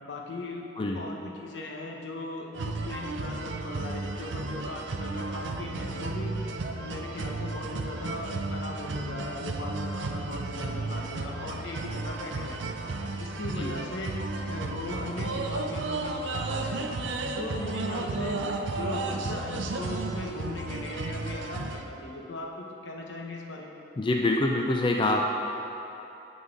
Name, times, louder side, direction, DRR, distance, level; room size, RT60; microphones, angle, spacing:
voice 1, 0.0-0.7 0.9-12.8 13.2-14.1 14.5-17.0 17.4-23.7, left 2 dB, 75° left, -1 dB, 0.9 m, -38 dB
sound 1, 2.5-21.8, right 3 dB, 75° right, 0.5 m, -33 dB
voice 2, 24.0-25.2, left 2 dB, 25° left, 1 dB, 0.4 m, -25 dB
9.6 x 4.0 x 5.2 m, 3.0 s
head